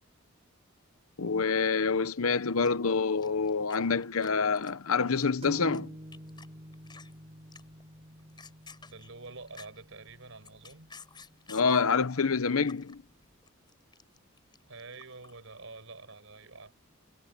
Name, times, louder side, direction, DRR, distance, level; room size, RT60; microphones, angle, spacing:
voice 1, 1.2-5.9 11.5-13.0, left 5 dB, 80° left, 0.9 m, -27 dB
sound 1, 2.6-4.3 4.6-5.8 6.1-6.5 6.7-7.1 7.5-7.8 8.2-9.9 10.3-12.0 12.4-13.0 13.2-15.3, left 5 dB, 20° left, 5.7 m, -51 dB
sound 2, 5.4-12.9, equal, 30° right, 4.3 m, -50 dB
voice 2, 8.8-10.9 14.7-16.7, right 3 dB, 65° right, 5.2 m, -47 dB
head